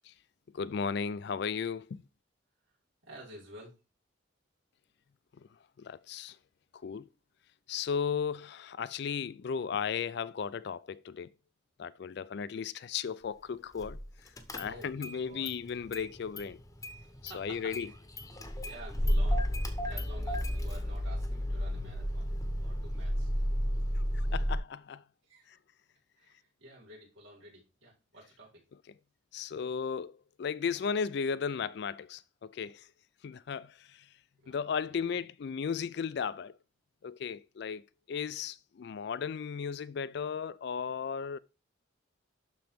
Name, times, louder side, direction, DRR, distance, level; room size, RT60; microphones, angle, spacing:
voice 1, 0.5-2.0 5.8-6.4 6.8-7.1 7.7-11.3 11.8-14.0 14.5-16.6 17.3-17.9 24.1-25.0 29.3-32.8 33.2-34.0 34.5-36.5 37.0-37.8 38.1-41.4, left 6 dB, 55° left, 0.3 m, -35 dB
voice 2, 3.0-3.7 14.6-15.5 17.0-17.7 18.6-19.4 19.8-22.3 22.6-23.3 24.4-24.5 25.2-25.5 26.2-28.6 34.4-34.6 34.9-35.2, right 1 dB, 80° right, 4.7 m, -51 dB
Car / Engine starting, 13.8-14.0 14.4-15.2 15.5-16.5 16.8-24.6, equal, 15° left, 0.8 m, -32 dB
11.5 x 3.9 x 3.5 m
head